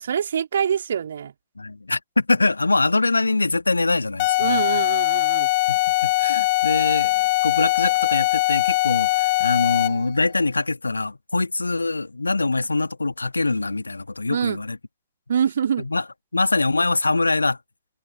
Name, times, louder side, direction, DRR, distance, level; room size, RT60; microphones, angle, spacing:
voice 1, 0.0-1.3 4.4-5.5 14.3-14.6 15.3-15.9, right 8 dB, 65° right, 3.2 m, -24 dB
voice 2, 1.6-4.8 5.7-14.8 15.8-16.0 16.3-17.6, left 3 dB, 80° left, 2.3 m, -23 dB
sound 1, 4.2-10.1, left 20 dB, 50° left, 0.8 m, -21 dB
figure-of-eight pair, 90°, 0 cm